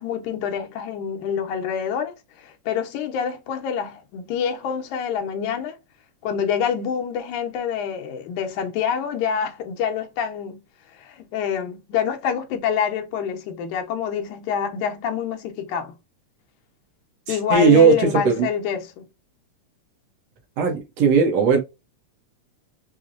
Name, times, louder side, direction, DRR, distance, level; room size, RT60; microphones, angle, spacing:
voice 1, 0.0-5.8 6.2-10.6 10.9-15.9 17.3-19.1, left 7 dB, 90° left, 2.2 m, -26 dB
voice 2, 17.3-18.5 20.6-21.6, right 6 dB, 70° right, 1.8 m, -17 dB
5.7 x 2.0 x 2.4 m
omnidirectional pair, 3.4 m